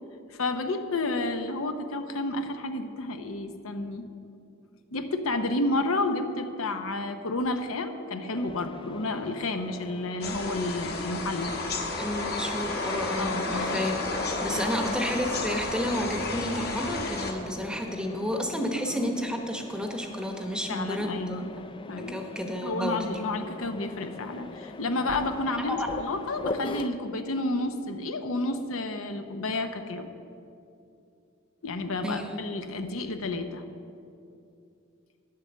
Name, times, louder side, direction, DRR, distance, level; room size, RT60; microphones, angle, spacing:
voice 1, 0.3-4.1 4.9-11.5 13.2-13.8 14.5-14.9 19.0-19.1 20.7-21.5 21.9-22.2 22.6-30.1 31.6-33.6, left 2 dB, 80° left, 7 dB, 0.8 m, -31 dB
Mechanisms, 8.4-26.9, left 3 dB, 25° left, 0.4 m, -42 dB
sound 1, 10.2-17.3, left 2 dB, 50° left, 1.3 m, -32 dB
voice 2, 12.0-21.6 22.0-23.1 25.6-25.9 32.0-32.4, equal, 5° right, 3 dB, 0.9 m, -31 dB
10.5 x 7.7 x 7.0 m, 2.6 s
head